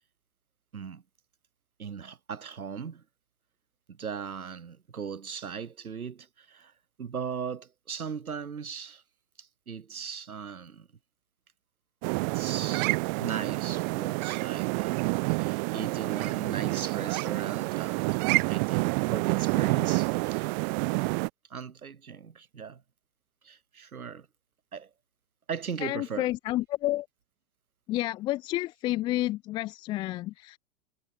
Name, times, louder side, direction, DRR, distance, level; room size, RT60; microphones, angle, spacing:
voice 1, 1.8-3.0 3.9-6.7 7.0-9.0 9.4-10.9 12.2-18.1 18.5-20.5 21.5-22.8 23.4-24.3 24.7-24.9 25.5-26.3, right 6 dB, 90° right, 0.8 m, -38 dB
sound 1, 12.0-21.3, right 33 dB, 35° right, 0.7 m, -28 dB
voice 2, 25.8-27.1 27.9-30.6, left 16 dB, 10° left, 0.3 m, -30 dB
figure-of-eight pair, 95°, 42 cm